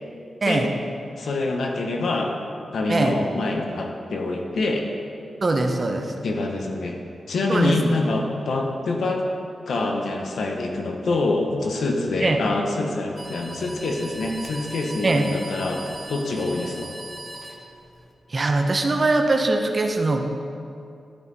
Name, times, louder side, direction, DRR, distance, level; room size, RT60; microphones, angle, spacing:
voice 1, 1.2-2.3 2.7-4.9 6.2-7.0 7.3-9.2 9.7-16.9, left 2 dB, 80° left, 1 dB, 1.0 m, -25 dB
voice 2, 5.4-6.1 7.5-7.9 12.2-12.4 15.0-15.3 18.3-20.2, right 2 dB, 35° right, 4 dB, 0.7 m, -21 dB
sound 1, 13.2-18.1, right 2 dB, 15° right, 1.0 m, -39 dB
12.0 x 5.5 x 4.1 m, 2.5 s
wide cardioid pair, 130°, 0 cm